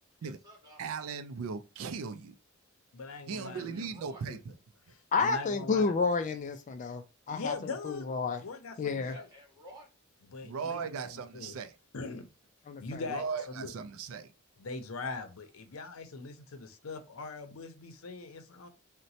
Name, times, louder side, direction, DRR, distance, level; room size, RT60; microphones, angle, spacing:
voice 1, 0.2-0.8 3.5-4.2 9.0-9.9, equal, 20° right, 1.7 m, -53 dB
voice 2, 0.8-2.3 3.3-4.5 10.4-11.8 13.1-14.3, right 5 dB, 80° right, 0.4 m, -38 dB
voice 3, 2.9-3.7 4.2-4.4 4.9-5.8 7.3-9.3 10.2-11.6 11.9-12.3 12.8-13.2 13.6-13.7 14.6-18.7, left 4 dB, 85° left, 0.6 m, -41 dB
voice 4, 5.1-8.4 8.8-9.1 12.7-13.0, left 4 dB, 35° left, 0.3 m, -30 dB
4.0 x 2.1 x 2.7 m
head